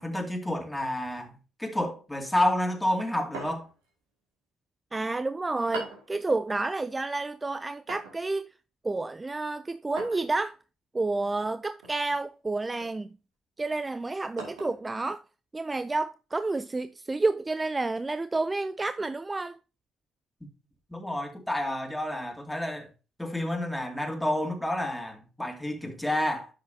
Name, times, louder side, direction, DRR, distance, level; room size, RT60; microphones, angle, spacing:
voice 1, 0.0-3.7 20.9-22.9 23.2-26.5, left 1 dB, 5° left, 2.4 m, -30 dB
sound 1, 3.3-3.9 5.7-6.1 7.9-8.2 10.0-10.3 11.8-12.2 12.8-13.0 14.4-14.8, right 3 dB, 75° right, 2.5 m, -40 dB
voice 2, 4.9-8.5 8.8-10.6 10.9-13.1 13.6-15.2 15.5-19.6, right 3 dB, 20° right, 0.4 m, -30 dB
10.5 x 6.1 x 2.7 m
hypercardioid pair, 50°, 0 cm